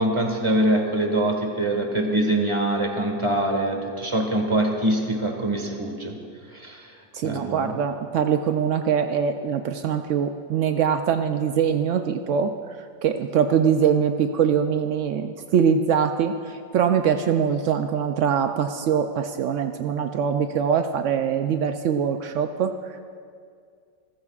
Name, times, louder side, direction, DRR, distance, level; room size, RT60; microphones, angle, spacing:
voice 1, 0.0-6.2 6.5-6.9 7.2-7.8, right 1 dB, 15° right, 2 dB, 1.5 m, -24 dB
voice 2, 7.1-12.5 13.0-23.0, right 7 dB, 80° right, 7 dB, 0.6 m, -23 dB
29.0 x 14.5 x 2.4 m, 2.2 s
omnidirectional pair, 1.9 m